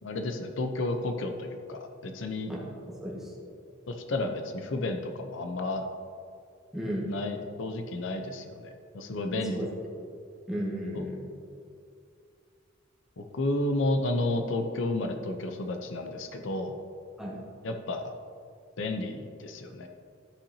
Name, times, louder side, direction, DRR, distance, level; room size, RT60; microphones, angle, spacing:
voice 1, 0.0-2.5 3.9-5.8 7.1-9.7 10.9-11.0 13.2-16.8 17.6-18.1 18.8-19.9, left 2 dB, 70° left, 5 dB, 0.6 m, -32 dB
voice 2, 2.5-3.3 6.7-7.1 9.4-9.7 10.5-11.2 17.2-17.4, equal, ahead, -5 dB, 1.5 m, -34 dB
13.0 x 5.6 x 2.8 m, 2.4 s
head